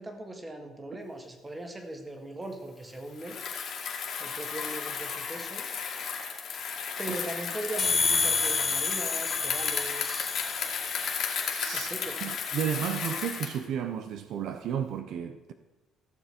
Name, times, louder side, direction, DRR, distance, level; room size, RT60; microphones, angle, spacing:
voice 1, 0.0-3.4 4.2-5.7 7.0-10.3 11.7-12.2, right 1 dB, 15° right, 1.6 m, -39 dB
Bicycle, 3.1-13.6, left 6 dB, 60° left, 2.1 m, -34 dB
sound 1, 7.8-11.4, left 4 dB, 35° left, 1.0 m, -29 dB
voice 2, 11.6-11.9 12.2-15.5, right 9 dB, 70° right, 0.7 m, -33 dB
16.0 x 7.0 x 4.4 m
cardioid pair, 120°, 0 cm